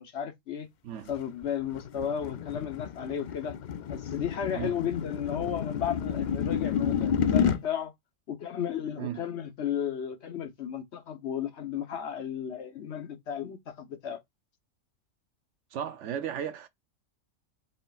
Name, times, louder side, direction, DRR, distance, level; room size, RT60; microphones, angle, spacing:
voice 1, 0.0-0.7 1.1-3.5 3.9-7.9 8.3-14.2, left 8 dB, 60° left, 1.0 m, -34 dB
sound 1, 1.1-7.6, left 8 dB, 80° left, 0.4 m, -30 dB
voice 2, 15.7-16.7, right 9 dB, 70° right, 1.0 m, -35 dB
5.5 x 4.0 x 2.3 m
omnidirectional pair, 1.3 m